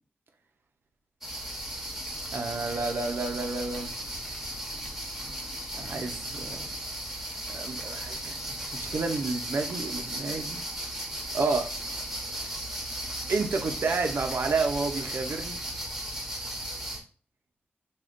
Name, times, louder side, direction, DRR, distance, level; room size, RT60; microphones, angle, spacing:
sound 1, 1.2-17.0, right 1 dB, 10° right, 0.9 m, -36 dB
voice 1, 2.3-3.9 5.7-6.7 7.5-10.6 11.3-11.7 13.3-15.6, right 4 dB, 70° right, 5 dB, 0.5 m, -30 dB
3.5 x 2.2 x 2.5 m, 0.40 s
cardioid pair, 65°, 4 cm